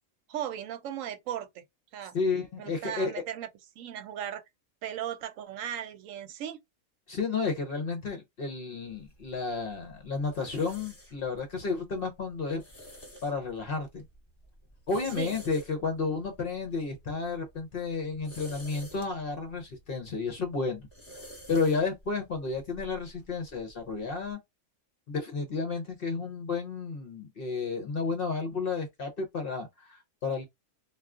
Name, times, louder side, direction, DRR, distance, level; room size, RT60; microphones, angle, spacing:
voice 1, 0.3-1.6 1.9-2.2 2.6-3.5 3.8-4.4 4.8-6.6 15.2-15.3, right 10 dB, 80° right, 1.0 m, -37 dB
voice 2, 2.1-3.2 7.1-12.6 13.2-14.0 14.9-20.9 21.5-24.4 25.1-30.4, left 4 dB, 55° left, 0.8 m, -32 dB
sound 1, 8.9-24.3, equal, 25° left, 1.1 m, -52 dB
2.3 x 2.3 x 3.5 m
omnidirectional pair, 1.4 m